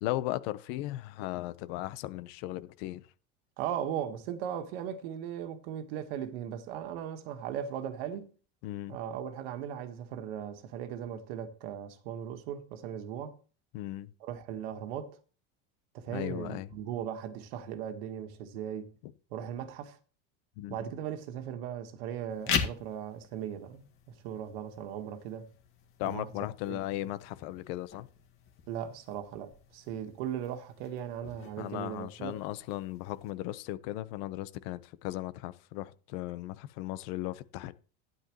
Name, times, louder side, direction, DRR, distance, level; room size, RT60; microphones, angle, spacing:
voice 1, 0.0-3.0 8.6-9.0 13.7-14.1 16.1-16.7 19.0-19.1 20.6-20.8 26.0-28.1 31.6-37.7, left 16 dB, 70° left, 1.0 m, -37 dB
voice 2, 3.6-8.3 8.9-13.4 14.2-15.2 15.9-18.9 19.3-20.0 20.7-25.5 26.1-26.3 26.7-26.8 28.7-32.4, right 9 dB, 80° right, 1.6 m, -38 dB
sound 1, 22.3-33.3, left 7 dB, 45° left, 1.9 m, -41 dB
12.0 x 10.5 x 3.1 m
supercardioid pair, 125°, 30 cm